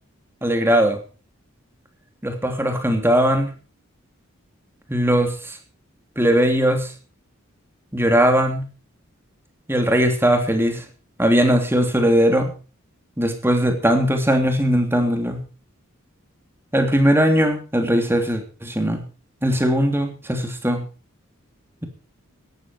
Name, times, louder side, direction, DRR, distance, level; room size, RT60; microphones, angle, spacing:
voice 1, 0.4-1.0 2.2-3.5 4.9-5.6 6.2-6.9 7.9-8.7 9.7-10.8 11.2-12.5 13.2-15.4 16.7-19.0 19.4-20.8, equal, 10° right, 5 dB, 3.1 m, -19 dB
16.5 x 13.0 x 4.6 m, 0.35 s
head